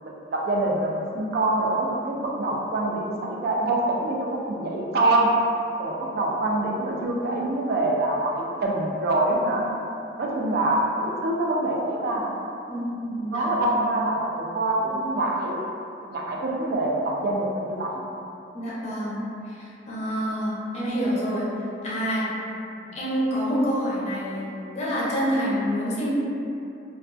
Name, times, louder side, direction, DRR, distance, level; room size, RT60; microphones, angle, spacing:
voice 1, 0.0-5.3 5.8-9.6 10.2-12.3 13.3-15.6 16.1-18.0 22.8-22.9, right 2 dB, 60° right, -2 dB, 0.3 m, -25 dB
voice 2, 12.7-14.0 18.5-21.4 21.8-22.3 22.9-26.1, equal, 40° left, -7 dB, 0.5 m, -27 dB
2.3 x 2.2 x 2.4 m, 2.7 s
head